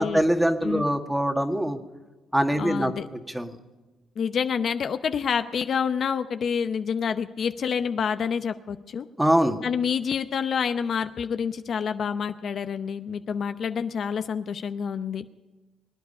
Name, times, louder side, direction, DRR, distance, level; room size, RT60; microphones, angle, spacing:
voice 1, 0.0-1.8 2.3-2.9 3.3-3.5 9.2-9.6, equal, 5° right, 6 dB, 1.7 m, -23 dB
voice 2, 2.6-3.1 4.2-9.0 9.6-15.2, left 7 dB, 55° left, 10 dB, 0.7 m, -28 dB
23.5 x 9.5 x 5.4 m, 1.2 s
cardioid pair, 80°, 0 cm